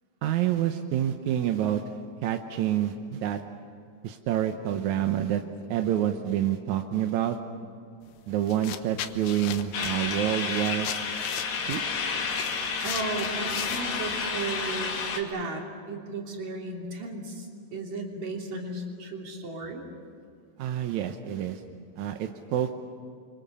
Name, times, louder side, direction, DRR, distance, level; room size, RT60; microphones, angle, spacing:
voice 1, 0.2-1.8 2.2-3.4 4.0-5.4 5.7-7.4 8.3-10.9 11.6-11.8 20.6-21.6 22.0-22.7, right 11 dB, 70° right, 6 dB, 1.9 m, -27 dB
sound 1, 8.0-8.2 8.5-14.4, left 11 dB, 85° left, 2.9 m, -38 dB
sound 2, 9.7-15.2, left 5 dB, 70° left, 4.1 m, -31 dB
voice 2, 12.8-19.8, right 3 dB, 50° right, 0 dB, 4.3 m, -35 dB
29.5 x 24.5 x 7.0 m, 2.4 s
omnidirectional pair, 4.3 m